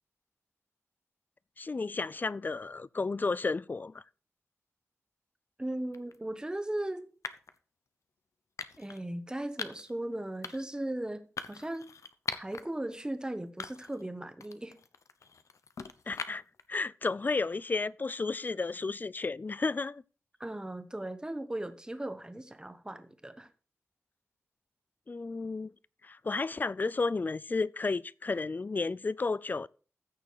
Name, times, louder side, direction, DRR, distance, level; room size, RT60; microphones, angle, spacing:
voice 1, 1.6-4.0 16.1-16.4 16.7-20.0 25.1-25.7 26.0-29.7, left 3 dB, 35° left, 0.4 m, -32 dB
voice 2, 5.6-7.1 8.8-11.9 12.3-14.8 20.4-23.5, right 1 dB, 15° right, 1.2 m, -37 dB
sound 1, 5.9-6.2 7.2-7.6 8.6-9.0 9.6-9.9 10.4-10.8 11.4-12.6 13.1-13.2 13.6-14.1 14.4-16.6, left 5 dB, 85° left, 0.8 m, -41 dB
14.5 x 6.6 x 4.8 m
wide cardioid pair, 100°, 5 cm